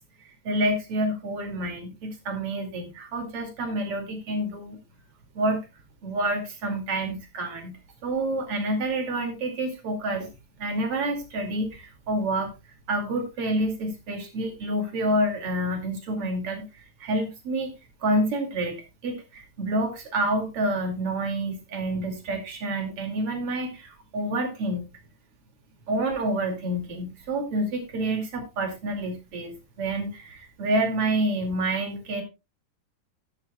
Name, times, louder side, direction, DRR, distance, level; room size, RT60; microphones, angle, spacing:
voice 1, 0.2-4.8 5.3-5.6 6.0-10.3 10.6-12.5 12.9-17.7 18.0-24.8 25.9-32.2, right 1 dB, 40° right, 4 dB, 2.8 m, -28 dB
12.5 x 12.0 x 2.3 m, 0.25 s
omnidirectional pair, 4.9 m